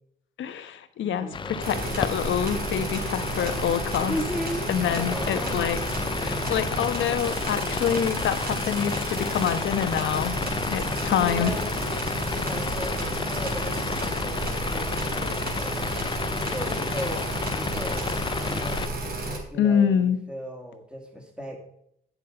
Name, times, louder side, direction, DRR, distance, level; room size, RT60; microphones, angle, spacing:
voice 1, 0.4-1.3 1.6-4.2 4.7-5.8 6.2-10.4 10.7-11.5 19.6-20.2, left 8 dB, 75° left, 9 dB, 1.2 m, -26 dB
voice 2, 1.0-2.1 4.0-5.9 11.2-11.7 12.3-15.9 16.4-17.3 17.5-18.0 18.3-18.9 19.5-21.6, equal, 5° right, 1 dB, 2.6 m, -36 dB
sound 1, 1.3-18.9, left 6 dB, 25° left, 0.4 m, -32 dB
sound 2, 1.6-19.4, right 2 dB, 50° right, 4.0 m, -32 dB
9.7 x 8.3 x 5.3 m, 0.70 s
cardioid pair, 90°, 20 cm